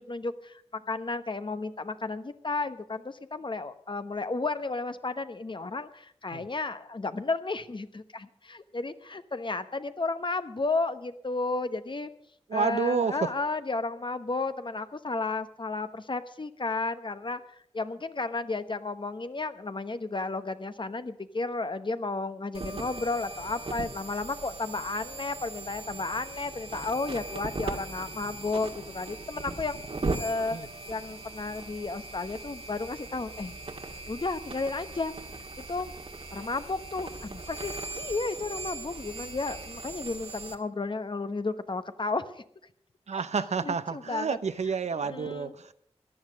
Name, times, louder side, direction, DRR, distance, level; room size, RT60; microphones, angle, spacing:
voice 1, 0.0-12.1 12.5-29.8 30.2-33.5 34.1-35.1 35.7-35.9 36.3-42.4 43.1-43.2 43.6-44.4 44.9-45.5, left 3 dB, 45° left, 11 dB, 1.0 m, -33 dB
voice 2, 12.5-13.3 30.5-30.7 43.1-45.7, right 5 dB, 80° right, 12 dB, 0.7 m, -29 dB
sound 1, 22.5-40.6, right 3 dB, 60° right, 1.7 m, -39 dB
14.5 x 10.5 x 6.3 m, 0.68 s
cardioid pair, 50°, 11 cm